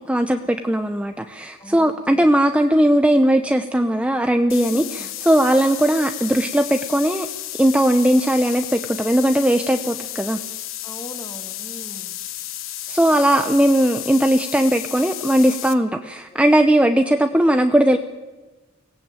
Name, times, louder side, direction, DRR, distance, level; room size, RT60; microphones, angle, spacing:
voice 1, 0.1-7.3 7.6-10.4 12.9-18.0, right 1 dB, 5° right, 6 dB, 0.8 m, -18 dB
voice 2, 1.6-2.3 4.7-5.1 10.8-12.2 16.3-16.4, left 1 dB, 20° left, 5 dB, 2.4 m, -40 dB
sound 1, 4.5-15.7, left 13 dB, 65° left, 1.3 m, -33 dB
24.5 x 17.5 x 9.0 m, 1.2 s
head